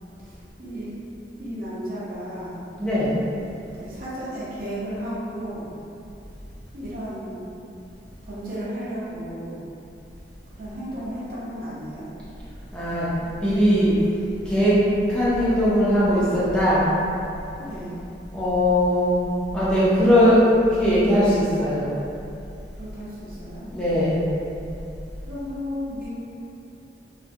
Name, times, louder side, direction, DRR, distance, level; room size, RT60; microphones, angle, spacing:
voice 1, 0.2-0.9 1.4-2.6 3.7-5.7 6.7-7.6 8.2-9.6 10.5-12.1 17.6-18.0 22.7-23.6 25.2-26.1, equal, 50° right, -8 dB, 0.6 m, -34 dB
voice 2, 2.8-3.1 12.7-13.1 13.4-14.0 14.5-14.8 15.1-16.9 18.3-19.3 19.5-20.4 20.7-21.9 23.7-24.3, equal, 5° left, -12 dB, 0.4 m, -20 dB
2.5 x 2.1 x 2.5 m, 2.7 s
head